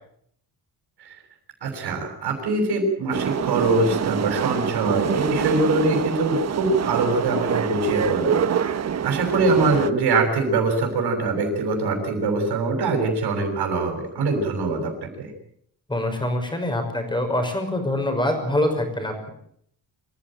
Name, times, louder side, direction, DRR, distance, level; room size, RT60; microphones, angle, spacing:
voice 1, 1.6-14.9 15.2-15.3, right 3 dB, 75° right, 2 dB, 7.1 m, -23 dB
sound 1, 3.1-9.9, right 8 dB, 40° right, 1.3 m, -26 dB
voice 2, 15.9-19.3, left 1 dB, 10° left, 5 dB, 5.9 m, -24 dB
26.0 x 15.5 x 9.1 m, 0.69 s
cardioid pair, 170°, 39 cm